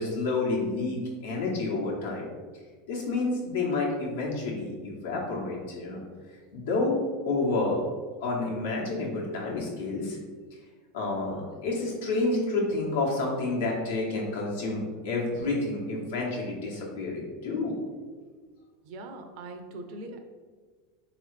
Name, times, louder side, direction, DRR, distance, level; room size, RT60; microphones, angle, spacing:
voice 1, 0.0-2.3 2.9-6.0 6.3-6.9 7.2-7.9 8.2-10.2 10.9-17.8, left 3 dB, 80° left, -3 dB, 1.1 m, -29 dB
voice 2, 18.8-20.2, right 2 dB, 60° right, 6 dB, 0.5 m, -41 dB
3.3 x 3.0 x 3.2 m, 1.4 s
supercardioid pair, 115°, 0 cm